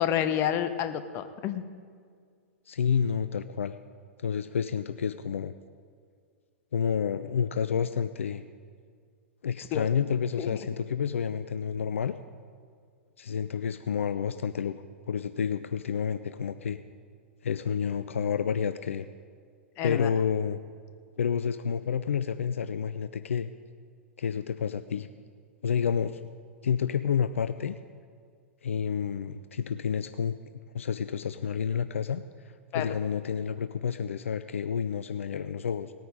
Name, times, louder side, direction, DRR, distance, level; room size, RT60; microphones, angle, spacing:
voice 1, 0.0-1.7 9.7-9.9 10.4-10.6 19.8-20.1 32.7-32.9, left 10 dB, 35° left, 10 dB, 0.9 m, -29 dB
voice 2, 2.7-3.8 4.2-5.5 6.7-8.4 9.4-12.1 13.2-16.8 17.4-19.1 19.8-20.6 21.2-23.5 24.2-25.1 25.6-26.2 26.6-27.8 28.6-30.4 30.7-32.2 32.7-35.9, left 7 dB, 70° left, 12 dB, 0.4 m, -29 dB
18.5 x 9.3 x 5.0 m, 2.1 s
figure-of-eight pair, 105°, 7 cm